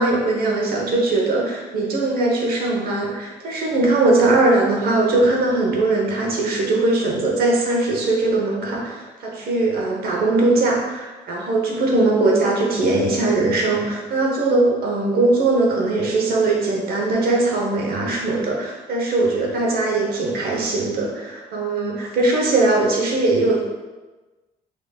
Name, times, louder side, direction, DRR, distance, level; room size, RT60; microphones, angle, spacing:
voice 1, 0.0-23.6, right 2 dB, 65° right, -1 dB, 1.0 m, -20 dB
5.0 x 3.6 x 2.3 m, 1.2 s
cardioid pair, 110°, 17 cm